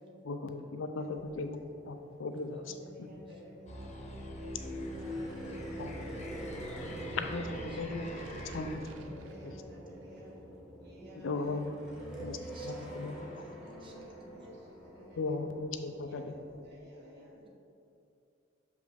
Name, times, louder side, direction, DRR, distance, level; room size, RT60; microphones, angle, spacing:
voice 1, 0.3-1.6 1.9-2.6 3.0-3.1 5.8-5.9 7.1-8.0 8.5-8.8 9.4-9.5 11.2-11.7 12.2-12.4 12.6-13.1 15.2-16.3, left 3 dB, 80° left, 7 dB, 0.5 m, -37 dB
Aircraft, 0.7-13.2 13.6-13.7, right 2 dB, 80° right, 0.5 m, -52 dB
voice 2, 0.9-1.7 2.5-3.9 4.4-6.4 9.0-10.4 10.8-12.9 13.6-15.4 16.0-17.5, equal, 60° right, -5 dB, 1.1 m, -54 dB
sound 1, 1.1-3.7 4.0-4.1 4.4-16.7, right 1 dB, 5° right, 1.0 m, -47 dB
sound 2, 3.7-8.8, left 1 dB, 35° left, 0.9 m, -42 dB
voice 3, 12.4-14.5 17.4-17.5, right 1 dB, 25° right, -1 dB, 0.6 m, -57 dB
6.3 x 5.0 x 3.4 m, 2.6 s
head